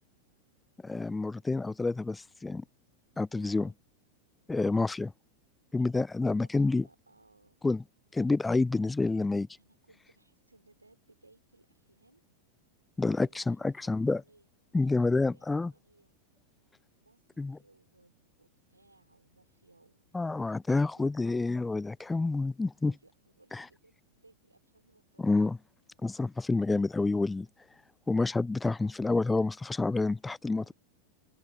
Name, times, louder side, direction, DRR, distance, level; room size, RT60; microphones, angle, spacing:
voice 1, 0.8-2.6 3.2-3.7 4.5-5.1 5.7-6.8 7.6-7.8 8.1-9.5 13.0-14.2 14.7-15.7 17.4-17.6 20.1-22.9 23.5-23.7 25.2-25.6 26.0-27.5 28.1-30.7, left 3 dB, 10° left, 0.3 m, -28 dB
voice 2, 3.4-3.8 6.3-7.6 9.6-12.2 13.1-14.5 14.8-16.1 17.0-20.0 20.6-21.5 22.8-25.5 30.6-30.7, right 2 dB, 80° right, 5.2 m, -63 dB
open air
figure-of-eight pair, 90°, 0 cm